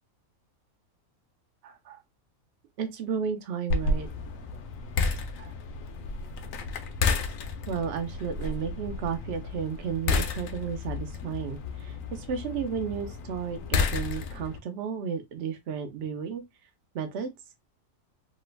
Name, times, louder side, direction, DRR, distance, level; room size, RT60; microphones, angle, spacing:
voice 1, 1.6-2.0 2.8-4.1 5.4-5.5 7.7-16.4 16.9-17.3, right 7 dB, 60° right, 0.8 m, -33 dB
sound 1, 3.7-14.6, left 4 dB, 75° left, 1.0 m, -31 dB
3.0 x 2.4 x 3.1 m
omnidirectional pair, 1.5 m